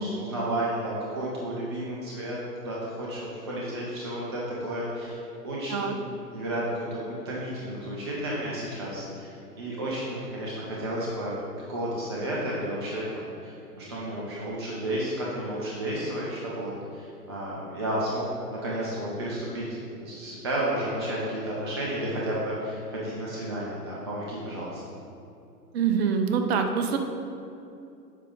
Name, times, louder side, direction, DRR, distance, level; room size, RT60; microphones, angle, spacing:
voice 1, 0.0-6.0 6.3-7.0 7.2-11.3 11.7-18.3 18.5-24.8, right 1 dB, 20° right, -5 dB, 0.3 m, -32 dB
voice 2, 25.7-27.0, right 6 dB, 40° right, 5 dB, 0.7 m, -25 dB
7.4 x 5.0 x 3.6 m, 2.6 s
figure-of-eight pair, 115°, 50 cm